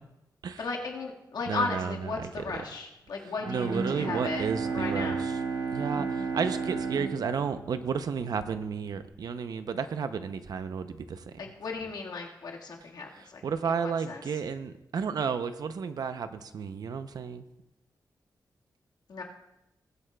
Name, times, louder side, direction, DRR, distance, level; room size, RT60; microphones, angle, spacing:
voice 1, 0.6-5.2 11.4-14.2 19.1-19.2, left 4 dB, 75° left, -1 dB, 1.7 m, -36 dB
voice 2, 1.5-2.6 3.5-5.4 5.7-11.4 13.2-17.5, right 6 dB, 65° right, 10 dB, 0.6 m, -32 dB
Bowed string instrument, 3.4-8.3, right 4 dB, 85° right, 3.8 m, -33 dB
21.0 x 8.7 x 2.3 m, 0.93 s
wide cardioid pair, 170°, 7 cm